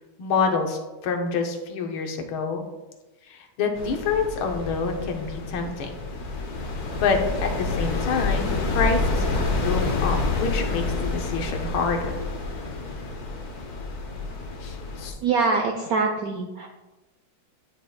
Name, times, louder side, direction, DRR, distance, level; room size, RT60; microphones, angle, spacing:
voice 1, 0.2-2.6 3.3-6.0 7.0-12.1 14.6-15.1, left 5 dB, 75° left, 4 dB, 1.7 m, -27 dB
sound 1, 3.7-15.1, left 3 dB, 55° left, 1.3 m, -28 dB
voice 2, 15.2-16.7, right 4 dB, 80° right, 3 dB, 0.8 m, -24 dB
9.8 x 5.9 x 2.3 m, 1.1 s
omnidirectional pair, 2.3 m